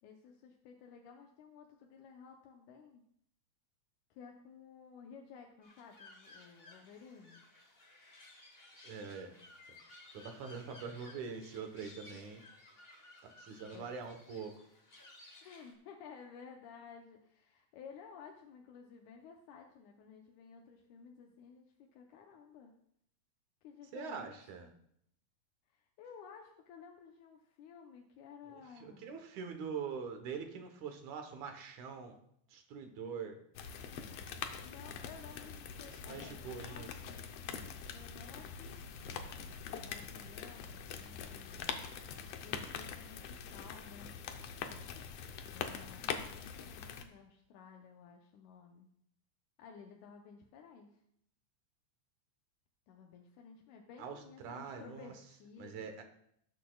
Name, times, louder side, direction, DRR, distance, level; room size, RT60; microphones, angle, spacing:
voice 1, 0.0-3.1 4.1-7.4 13.7-13.9 15.4-22.8 23.6-24.7 25.7-29.1 34.6-36.8 37.9-39.3 39.8-41.8 42.4-44.2 45.5-48.9 49.6-51.0 52.9-55.9, left 6 dB, 90° left, 2 dB, 2.3 m, -55 dB
sound 1, 5.6-15.7, left 2 dB, 40° left, 0.9 m, -58 dB
voice 2, 8.8-9.4 10.1-12.4 13.2-14.5 23.9-24.7 28.5-32.2 32.5-33.4 35.9-37.3 54.0-55.1 55.6-56.0, right 6 dB, 80° right, 5 dB, 2.6 m, -44 dB
sound 2, 33.5-47.0, left 7 dB, 70° left, 1.7 m, -44 dB
18.5 x 8.2 x 2.4 m, 0.70 s
omnidirectional pair, 3.4 m